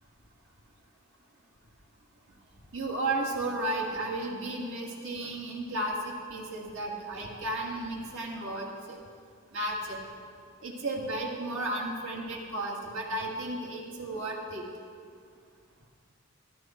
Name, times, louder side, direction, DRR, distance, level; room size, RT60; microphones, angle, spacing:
voice 1, 2.7-9.0 9.5-10.0 10.6-14.6, right 2 dB, 65° right, -2 dB, 2.2 m, -33 dB
14.0 x 13.5 x 4.5 m, 2.2 s
head